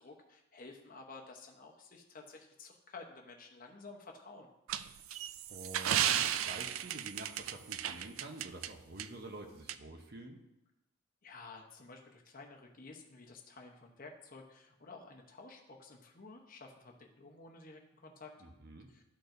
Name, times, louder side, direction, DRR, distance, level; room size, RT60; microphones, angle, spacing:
voice 1, 0.0-4.5 11.2-18.3 18.9-19.1, left 3 dB, 40° left, 2 dB, 0.9 m, -52 dB
sound 1, 4.7-8.7 9.0-9.1 9.7-9.8, right 10 dB, 75° right, 0.3 m, -34 dB
voice 2, 5.5-10.4 18.4-18.9, right 2 dB, 50° right, 4 dB, 0.9 m, -48 dB
12.5 x 4.5 x 2.6 m, 0.93 s
head